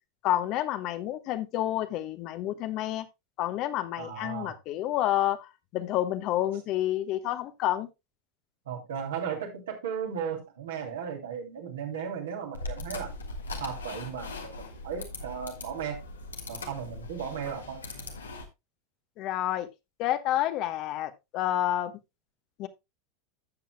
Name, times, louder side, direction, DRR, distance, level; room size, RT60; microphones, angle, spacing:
voice 1, 0.2-3.1 3.4-7.9 19.2-19.7 20.0-21.9 22.6-22.7, left 13 dB, 50° left, 1.1 m, -29 dB
voice 2, 4.0-4.6 8.7-13.1 13.6-16.0 16.5-17.8, right 7 dB, 70° right, 2.8 m, -36 dB
sound 1, 12.5-18.5, left 2 dB, 85° left, 1.7 m, -40 dB
14.0 x 7.7 x 2.2 m
figure-of-eight pair, 85°, 0 cm